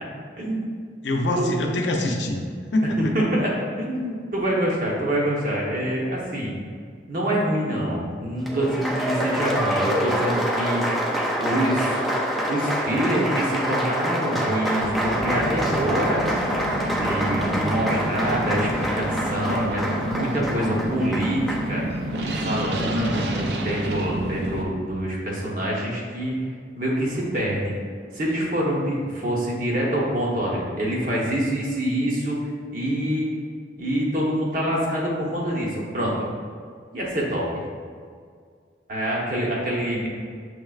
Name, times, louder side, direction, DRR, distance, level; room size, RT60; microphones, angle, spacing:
voice 1, 1.0-2.4 2.7-3.2 23.2-23.3, left 1 dB, 80° left, 2 dB, 0.5 m, -24 dB
voice 2, 3.0-3.5 3.8-6.5 7.1-10.8 11.4-12.0 12.5-16.2 16.9-21.8 22.3-26.3 26.7-27.7 28.1-32.3 32.7-33.3 33.8-36.3 36.9-37.5 38.9-40.1, right 1 dB, 50° right, -4 dB, 0.9 m, -26 dB
Applause, 8.4-21.7, equal, ahead, 0.3 m, -26 dB
sound 1, 14.8-24.6, right 1 dB, 65° right, 0.4 m, -29 dB
6.4 x 3.2 x 2.4 m, 2.1 s
head